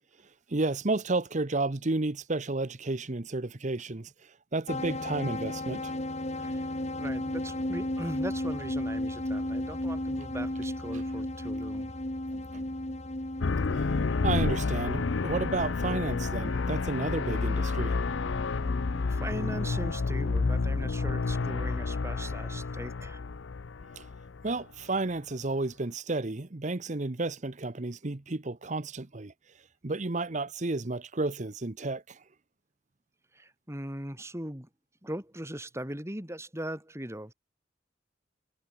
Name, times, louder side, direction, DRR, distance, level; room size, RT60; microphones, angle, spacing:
voice 1, 0.5-4.1 4.5-5.9 12.3-12.6 13.7-13.9 14.2-18.0 24.0-24.1 24.4-29.3 29.8-32.2, right 2 dB, 40° right, 1.0 m, -32 dB
sound 1, 4.7-19.6, left 1 dB, 35° left, 2.2 m, -35 dB
voice 2, 7.0-11.9 19.1-23.2 33.3-34.7 35.0-37.3, right 1 dB, 15° right, 4.8 m, -39 dB
sound 2, 13.4-24.6, left 4 dB, 90° left, 0.6 m, -30 dB
head